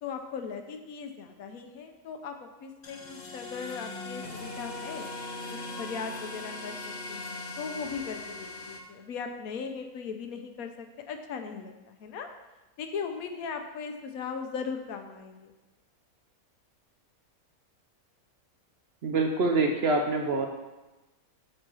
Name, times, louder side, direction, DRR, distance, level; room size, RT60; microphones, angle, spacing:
voice 1, 0.0-5.1 5.5-12.3 12.8-15.5, left 6 dB, 75° left, 6 dB, 1.2 m, -38 dB
sound 1, 2.8-8.8, left 2 dB, 40° left, 0.7 m, -39 dB
voice 2, 19.0-20.5, right 3 dB, 60° right, 2 dB, 0.7 m, -25 dB
6.4 x 4.4 x 6.0 m, 1.1 s
omnidirectional pair, 1.5 m